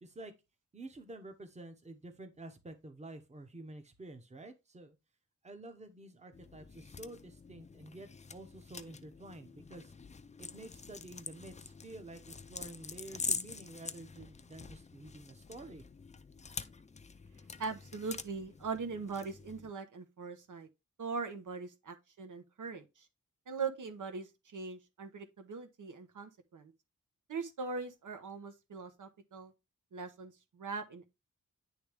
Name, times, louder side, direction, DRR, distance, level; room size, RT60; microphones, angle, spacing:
voice 1, 0.0-0.3 0.7-5.0 5.4-9.9 10.4-15.8, right 2 dB, 20° right, 0.9 m, -50 dB
sound 1, 6.3-19.7, left 4 dB, 25° left, 0.4 m, -45 dB
voice 2, 17.6-20.7 21.0-23.1 23.5-26.7 27.3-29.5 29.9-31.1, right 4 dB, 85° right, 1.2 m, -41 dB
10.0 x 3.4 x 3.4 m
wide cardioid pair, 165°, 30 cm